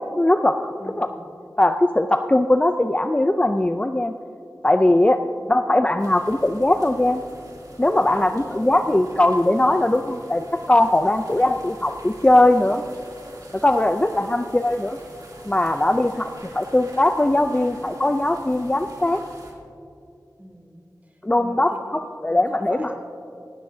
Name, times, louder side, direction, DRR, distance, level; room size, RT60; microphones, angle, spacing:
voice 1, 0.0-0.7 1.0-1.1 1.6-4.1 4.6-5.2 5.5-7.2 7.8-12.8 13.6-15.0 15.5-19.2 21.2-21.7 22.2-22.9, left 1 dB, 20° left, 7 dB, 0.5 m, -20 dB
voice 2, 0.8-1.3 8.0-8.8 9.5-9.7 11.1-11.4 15.8-16.0 20.4-22.0 22.3-22.9, equal, 25° right, 1 dB, 2.7 m, -41 dB
sound 1, 6.0-19.5, right 1 dB, 65° right, 2.8 m, -45 dB
17.0 x 16.5 x 2.7 m, 2.5 s
wide cardioid pair, 50°, 7 cm